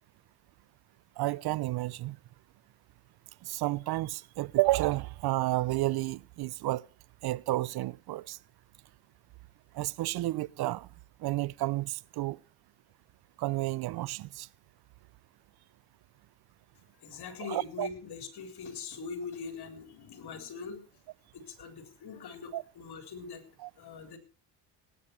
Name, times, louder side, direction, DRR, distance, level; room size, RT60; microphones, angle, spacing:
voice 1, 1.2-2.2 3.4-6.9 7.2-8.4 9.7-10.9 11.2-12.4 13.4-14.5 17.4-17.9 22.5-22.6 23.6-23.7, right 17 dB, 60° right, 0.6 m, -31 dB
voice 2, 17.0-20.8 21.3-23.5 23.8-24.2, left 5 dB, 60° left, 3.9 m, -42 dB
18.5 x 9.5 x 4.5 m
supercardioid pair, 80°, 43 cm